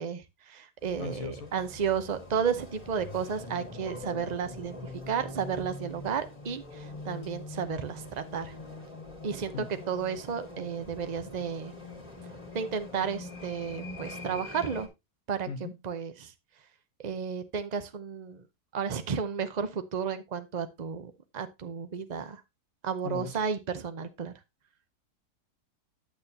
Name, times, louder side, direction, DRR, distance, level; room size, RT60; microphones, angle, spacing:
voice 1, 0.0-4.8 5.1-8.5 9.2-9.5 9.9-11.7 12.5-14.9 15.3-15.5 15.8-16.3 17.0-18.4 18.7-22.4 22.8-24.3, right 6 dB, 80° right, 0.3 m, -33 dB
sound 1, 0.8-14.9, left 2 dB, 20° left, 1.8 m, -43 dB
voice 2, 1.0-1.5 9.5-9.8 15.5-15.7 23.0-23.4, left 5 dB, 55° left, 1.5 m, -38 dB
8.9 x 8.3 x 2.7 m
omnidirectional pair, 1.8 m